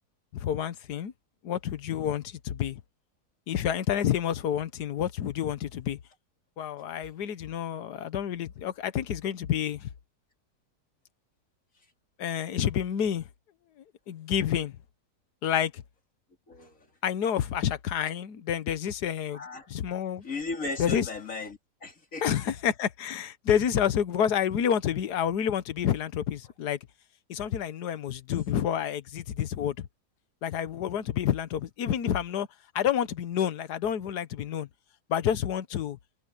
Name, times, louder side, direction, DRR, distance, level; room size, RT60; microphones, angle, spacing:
voice 1, 0.3-1.1 1.4-2.8 3.5-6.0 6.6-9.9 12.2-13.3 14.1-14.7 15.4-15.8 17.0-19.4 19.7-20.2 20.8-21.1 22.2-26.8 27.3-29.9 30.4-32.5 32.7-34.7 35.1-36.0, left 9 dB, 75° left, 1.6 m, -29 dB
voice 2, 16.5-16.8 19.3-19.7 20.2-22.2, left 3 dB, 50° left, 3.4 m, -36 dB
omnidirectional pair, 1.8 m